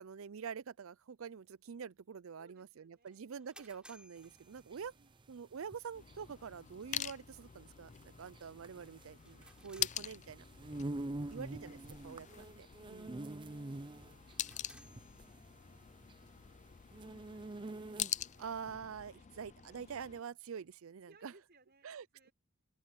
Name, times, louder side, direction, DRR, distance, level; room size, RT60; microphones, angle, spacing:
voice 1, 0.0-4.9 5.3-10.4 11.3-11.8 12.0-13.2 18.4-21.3 21.8-22.3, right 6 dB, 75° right, 0.5 m, -46 dB
voice 2, 2.4-3.4 4.9-5.3 9.4-9.5 15.4-16.6 17.3-18.1 19.1-19.4 21.0-22.3, right 2 dB, 50° right, 6.2 m, -69 dB
sound 1, 3.1-5.3 9.1-10.8 14.1-15.9, right 1 dB, 5° right, 3.4 m, -62 dB
sound 2, 4.2-18.4, right 2 dB, 25° right, 0.5 m, -46 dB
sound 3, 5.9-20.2, left 11 dB, 35° left, 0.4 m, -45 dB
open air
head